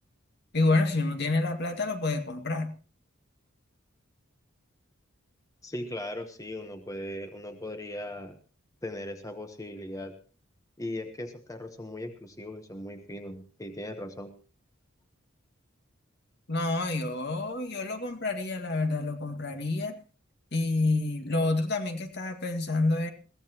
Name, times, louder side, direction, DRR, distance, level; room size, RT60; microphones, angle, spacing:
voice 1, 0.5-2.7 16.5-19.9 20.5-23.1, left 2 dB, 55° left, 6 dB, 2.1 m, -28 dB
voice 2, 5.6-8.4 8.8-10.2 10.8-14.4, left 1 dB, 15° left, 7 dB, 1.1 m, -38 dB
21.5 x 16.0 x 3.0 m, 0.36 s
head